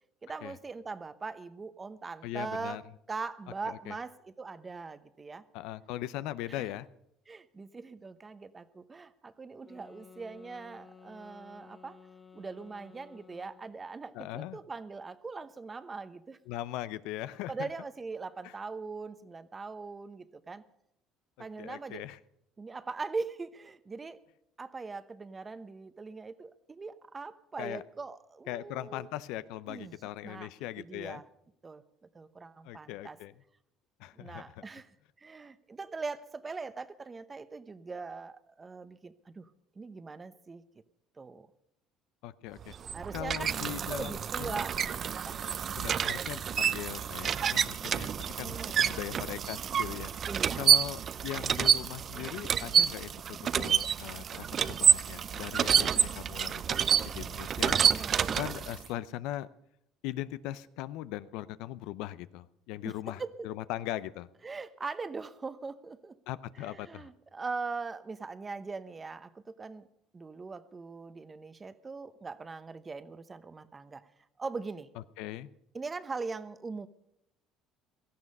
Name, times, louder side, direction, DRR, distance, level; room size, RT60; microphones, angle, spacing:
voice 1, 0.2-2.8 3.1-5.4 6.5-6.7 7.3-12.0 12.3-16.4 17.5-20.6 21.4-22.0 22.6-24.2 24.6-29.1 29.7-30.0 30.2-30.5 30.8-31.2 31.6-31.8 32.1-33.2 34.1-34.9 35.2-39.5 39.7-40.6 41.2-41.5 42.9-43.5 43.8-45.4 48.4-49.0 50.3-50.7 57.9-58.3 62.8-63.5 64.4-66.2 66.6-69.9 70.1-74.1 74.4-74.9 75.7-76.9, right 4 dB, 25° right, 14 dB, 0.9 m, -41 dB
voice 2, 2.2-2.8 3.7-3.9 5.5-6.9 14.1-14.6 16.5-17.7 18.4-18.5 21.4-22.2 27.6-27.8 28.5-31.2 32.6-33.3 34.0-34.6 42.2-42.7 43.1-44.6 45.7-50.1 50.6-56.8 57.0-57.8 58.3-59.5 60.0-64.3 66.3-67.1 75.2-75.5, left 14 dB, 80° left, 16 dB, 0.6 m, -40 dB
sound 1, 9.6-13.8, left 5 dB, 25° left, 1.7 m, -55 dB
sound 2, 42.6-58.9, right 8 dB, 45° right, 0.6 m, -28 dB
17.0 x 13.5 x 5.4 m, 0.78 s
supercardioid pair, 95°, 0 cm